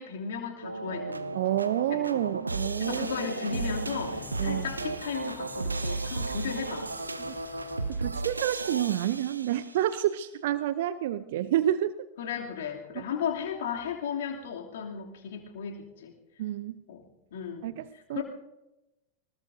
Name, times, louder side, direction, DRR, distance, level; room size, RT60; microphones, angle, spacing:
voice 1, 0.0-1.4 1.9-2.3 2.8-6.9 12.2-16.1 16.9-17.0 17.3-18.2, left 7 dB, 55° left, 1 dB, 2.8 m, -35 dB
sound 1, 0.6-9.9, right 3 dB, 80° right, 0.9 m, -34 dB
voice 2, 1.3-3.1 4.4-4.7 7.3-7.4 7.9-12.0 12.9-13.0 16.4-16.8 17.6-18.2, right 12 dB, 55° right, 15 dB, 0.6 m, -29 dB
Thunder, 3.5-8.1, left 4 dB, 25° left, 4.6 m, -50 dB
24.0 x 20.0 x 2.7 m, 0.94 s
figure-of-eight pair, 90°, 0 cm